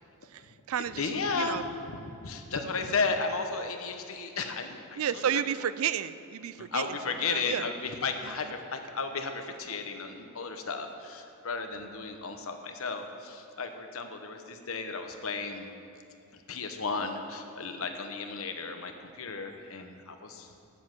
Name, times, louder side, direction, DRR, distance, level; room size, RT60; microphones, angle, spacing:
voice 1, 0.3-1.6 5.0-7.7 8.2-8.5, right 9 dB, 70° right, 15 dB, 0.4 m, -32 dB
voice 2, 1.0-5.4 6.6-15.7 16.5-20.5, left 4 dB, 70° left, 6 dB, 1.0 m, -34 dB
9.7 x 8.1 x 7.6 m, 2.7 s
head